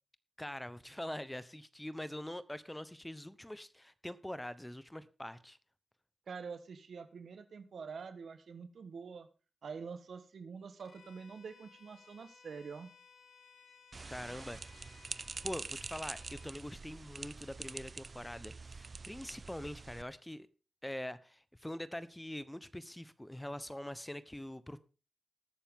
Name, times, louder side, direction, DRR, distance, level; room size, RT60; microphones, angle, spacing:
voice 1, 0.4-5.6 14.1-14.6 15.4-20.5 20.8-24.8, left 1 dB, 10° left, 15 dB, 1.0 m, -44 dB
voice 2, 6.3-9.3 9.6-12.9, right 5 dB, 75° right, 10 dB, 1.3 m, -46 dB
Bowed string instrument, 10.8-16.6, left 5 dB, 75° left, 1.8 m, -60 dB
sound 1, 13.9-20.0, right 4 dB, 50° right, 0.5 m, -46 dB
20.0 x 7.0 x 3.7 m, 0.33 s
cardioid pair, 45°, 0 cm